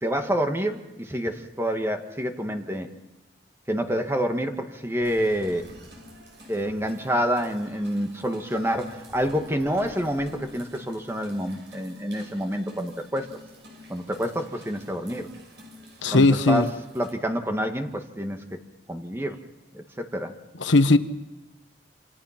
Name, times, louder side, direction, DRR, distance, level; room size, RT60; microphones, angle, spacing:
voice 1, 0.0-2.9 3.7-5.7 6.5-13.3 13.9-15.3 16.1-18.4 18.9-19.4 19.7-20.3, equal, 15° right, 5 dB, 1.6 m, -28 dB
sound 1, 5.0-17.1, left 1 dB, 70° right, 6.6 m, -48 dB
voice 2, 16.0-16.7 20.6-21.0, left 2 dB, 80° left, 11 dB, 1.1 m, -18 dB
27.5 x 27.0 x 5.9 m, 0.99 s
head